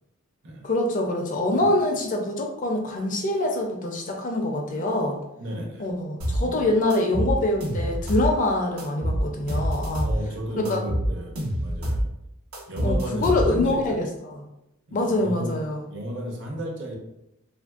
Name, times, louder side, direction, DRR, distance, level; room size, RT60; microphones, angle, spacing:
voice 1, 0.6-5.2 5.8-10.1 10.7-10.8 12.8-14.3 14.9-15.8, left 2 dB, 35° left, 2 dB, 0.4 m, -25 dB
voice 2, 5.4-5.9 6.2-6.7 10.0-12.1 12.7-14.1 14.9-15.5 15.9-17.0, equal, 55° right, 0 dB, 0.6 m, -34 dB
sound 1, 6.2-6.5 6.9-8.3 8.8-10.2 10.7-12.1 12.5-13.7, equal, 80° right, 1.0 m, -26 dB
3.1 x 2.5 x 2.3 m, 0.85 s
head